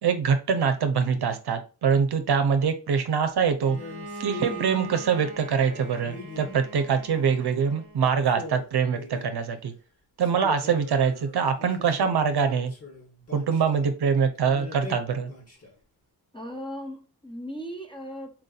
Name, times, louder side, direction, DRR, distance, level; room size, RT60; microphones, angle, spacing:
voice 1, 0.0-3.8 4.2-9.7 10.2-12.7 13.3-15.3, right 6 dB, 70° right, 8 dB, 0.7 m, -24 dB
Bowed string instrument, 3.6-8.3, right 3 dB, 30° right, 1.3 m, -41 dB
sound 1, 3.7-4.7 5.7-6.7 7.1-7.7 8.0-8.1 8.3-9.5 10.2-13.9 14.4-15.8, left 3 dB, 35° left, 1.9 m, -42 dB
voice 2, 16.3-18.4, equal, 10° left, 2 dB, 1.3 m, -37 dB
4.4 x 2.6 x 4.0 m, 0.34 s
cardioid pair, 65°, 41 cm